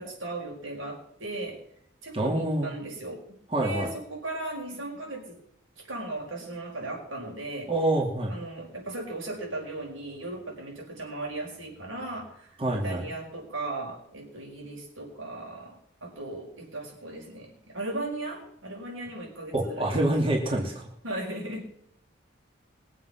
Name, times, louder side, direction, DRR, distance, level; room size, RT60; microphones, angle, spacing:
voice 1, 0.0-1.6 2.0-5.4 5.8-7.7 8.3-20.1 21.0-21.7, right 2 dB, 85° right, -1 dB, 5.6 m, -37 dB
voice 2, 2.1-2.7 3.5-3.9 7.7-8.4 12.6-13.0 19.5-20.9, right 1 dB, 25° right, -2 dB, 2.7 m, -26 dB
22.0 x 7.9 x 5.8 m, 0.75 s
head